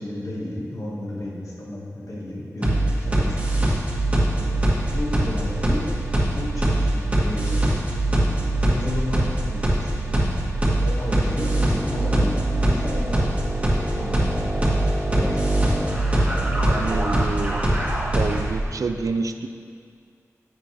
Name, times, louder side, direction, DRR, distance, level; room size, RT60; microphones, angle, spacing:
voice 1, 0.0-3.7 4.4-4.6 4.9-5.9 6.3-7.6 8.2-9.2 9.5-10.4 10.8-13.3 13.9-14.6 15.1-15.6 16.1-17.1, left 1 dB, 80° left, -5 dB, 1.9 m, -33 dB
sound 1, 2.6-18.6, right 1 dB, 25° right, 1.8 m, -22 dB
voice 2, 16.7-17.6 18.1-19.5, right 4 dB, 80° right, 8 dB, 0.5 m, -28 dB
10.5 x 7.9 x 3.4 m, 2.2 s
wide cardioid pair, 90°, 6 cm